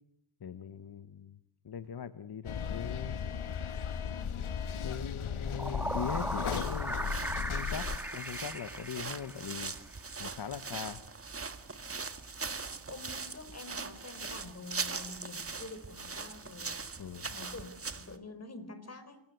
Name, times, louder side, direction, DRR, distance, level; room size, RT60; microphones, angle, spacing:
voice 1, 0.4-1.4 1.6-3.2 4.8-9.7 10.2-11.0 17.0-17.3, left 7 dB, 50° left, 12 dB, 1.4 m, -41 dB
sound 1, 2.4-8.0, left 7 dB, 75° left, 1.9 m, -36 dB
sound 2, 5.3-9.7, right 1 dB, 5° right, 3.3 m, -38 dB
sound 3, 6.3-18.2, right 4 dB, 25° right, 1.9 m, -41 dB
voice 2, 12.9-16.8 17.3-19.2, left 2 dB, 30° left, 10 dB, 4.6 m, -47 dB
28.5 x 23.0 x 8.0 m, 0.72 s
wide cardioid pair, 135°, 49 cm